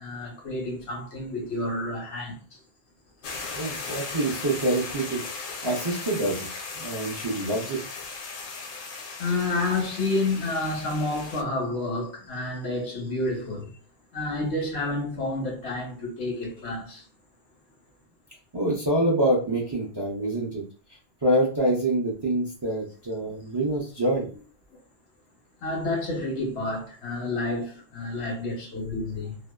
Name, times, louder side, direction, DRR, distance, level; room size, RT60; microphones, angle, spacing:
voice 1, 0.0-2.4 9.2-13.7 14.1-17.0 25.6-29.4, left 2 dB, 90° left, 1.2 m, -29 dB
sound 1, 3.2-11.4, left 4 dB, 60° left, 0.6 m, -37 dB
voice 2, 3.5-5.2 5.6-6.5 6.8-7.8 18.5-20.6 21.2-24.3, right 1 dB, 40° right, 0.4 m, -26 dB
2.7 x 2.1 x 2.2 m
omnidirectional pair, 1.1 m